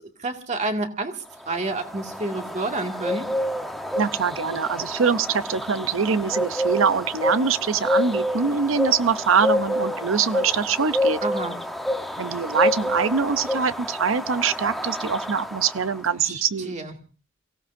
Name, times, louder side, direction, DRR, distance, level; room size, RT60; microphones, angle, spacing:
voice 1, 0.2-1.2 1.5-3.3 11.2-11.5 16.2-16.9, right 2 dB, 35° right, 2.0 m, -29 dB
sound 1, 1.4-16.0, left 1 dB, ahead, 0.9 m, -28 dB
voice 2, 4.0-11.2 12.2-16.7, right 6 dB, 85° right, 0.7 m, -23 dB
29.0 x 17.0 x 2.6 m
head